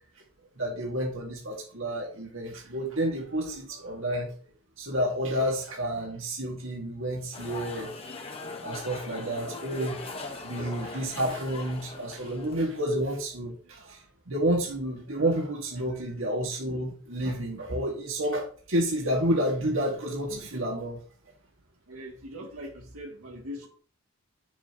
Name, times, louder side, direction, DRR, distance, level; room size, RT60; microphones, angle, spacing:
voice 1, 0.6-4.3 4.8-7.9 8.6-10.0 10.4-21.0, right 1 dB, 65° right, 2.1 m, -30 dB
sound 1, 7.3-12.8, left 3 dB, 25° left, 1.2 m, -40 dB
voice 2, 21.9-23.7, equal, 85° right, 2.5 m, -41 dB
9.6 x 7.1 x 3.0 m
head